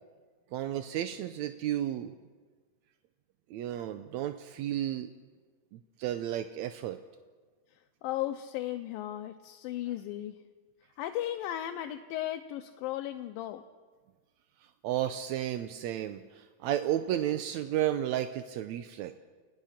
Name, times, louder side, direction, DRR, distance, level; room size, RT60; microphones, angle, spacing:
voice 1, 0.5-2.1 3.5-5.1 5.7-7.0 14.8-19.2, right 11 dB, 80° right, 9 dB, 1.6 m, -33 dB
voice 2, 7.7-10.4 11.0-13.6, left 13 dB, 85° left, 6 dB, 2.5 m, -36 dB
29.5 x 18.5 x 5.9 m, 1.4 s
omnidirectional pair, 4.0 m